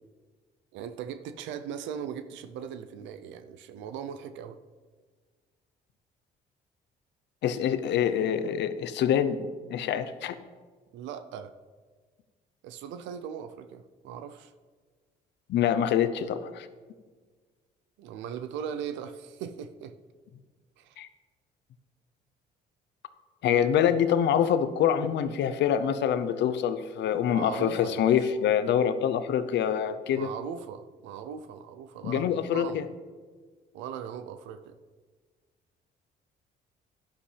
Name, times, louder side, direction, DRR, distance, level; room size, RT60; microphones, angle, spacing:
voice 1, 0.7-4.6 10.9-11.5 12.6-14.5 18.0-19.9 20.8-21.0 27.3-28.2 30.1-32.8 33.7-34.8, right 8 dB, 80° right, 10 dB, 0.5 m, -39 dB
voice 2, 7.4-10.4 15.5-16.7 21.0-21.1 23.4-30.3 32.0-32.8, left 9 dB, 70° left, 12 dB, 0.7 m, -25 dB
11.0 x 10.5 x 3.3 m, 1.5 s
supercardioid pair, 70°, 19 cm